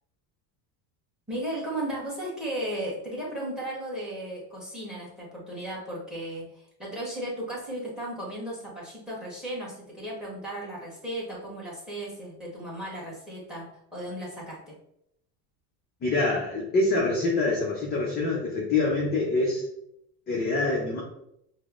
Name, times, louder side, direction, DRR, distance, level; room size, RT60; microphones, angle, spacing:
voice 1, 1.3-13.7 13.9-14.7, right 1 dB, ahead, -3 dB, 1.0 m, -35 dB
voice 2, 16.0-19.6 20.3-21.0, left 3 dB, 20° left, -4 dB, 0.4 m, -25 dB
5.0 x 2.0 x 2.4 m, 0.77 s
cardioid pair, 140°, 48 cm